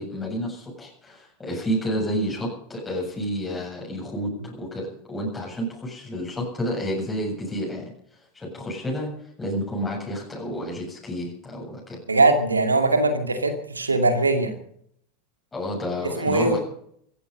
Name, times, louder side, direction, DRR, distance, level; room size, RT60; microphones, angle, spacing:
voice 1, 0.0-7.9 8.3-9.1 9.4-12.0 15.5-16.6, equal, 15° left, -3 dB, 7.7 m, -30 dB
voice 2, 12.1-14.6 16.2-16.6, right 2 dB, 90° right, 7 dB, 2.4 m, -21 dB
17.0 x 15.0 x 5.5 m, 0.67 s
figure-of-eight pair, 85°, 0 cm